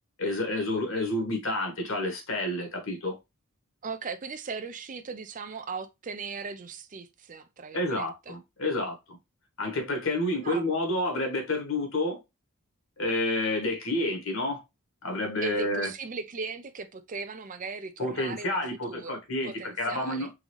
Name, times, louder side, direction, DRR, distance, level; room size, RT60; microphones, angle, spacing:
voice 1, 0.2-3.1 7.7-9.2 9.6-12.2 13.0-14.6 15.0-15.9 18.0-20.3, left 1 dB, 60° left, 1.4 m, -29 dB
voice 2, 3.8-8.4 10.4-10.7 15.4-18.6 18.9-20.3, right 4 dB, 35° right, 0.5 m, -38 dB
3.9 x 3.7 x 3.1 m
head